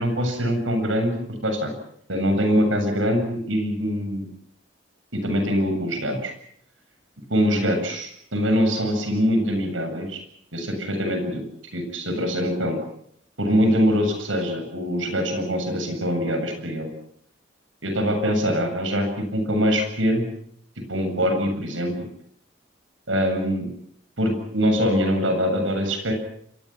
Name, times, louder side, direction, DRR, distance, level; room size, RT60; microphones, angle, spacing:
voice 1, 0.0-1.7 2.1-4.3 5.1-6.3 7.3-10.2 10.5-11.4 11.7-12.8 13.4-16.9 17.8-20.3 20.9-21.9 23.1-23.7 24.2-26.1, equal, 85° right, 6 dB, 7.8 m, -23 dB
28.0 x 23.0 x 6.1 m, 0.67 s
head